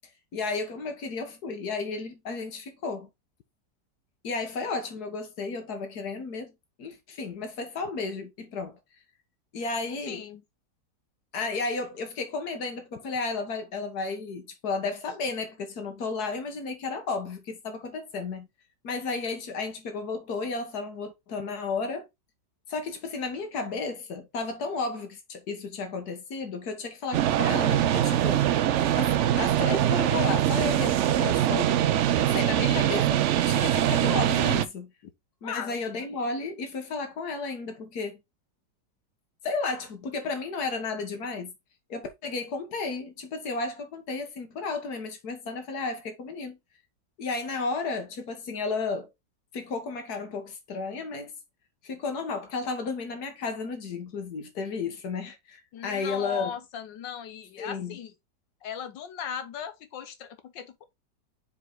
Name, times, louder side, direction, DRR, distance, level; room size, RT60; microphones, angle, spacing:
voice 1, 0.3-3.1 4.2-6.5 6.8-8.8 9.5-10.2 11.3-18.5 18.8-22.1 22.7-28.4 28.9-31.8 32.2-33.1 33.5-34.9 35.4-38.2 39.4-41.5 41.9-46.6 47.2-49.1 49.5-51.3 51.8-56.5 57.6-58.0, left 4 dB, 60° left, 2.0 m, -33 dB
voice 2, 10.1-10.4 32.6-32.9 35.4-35.8 55.7-58.1 58.6-60.9, left 8 dB, 90° left, 1.7 m, -38 dB
sound 1, 27.1-34.7, right 11 dB, 80° right, 0.6 m, -23 dB
5.7 x 4.8 x 3.9 m
omnidirectional pair, 1.9 m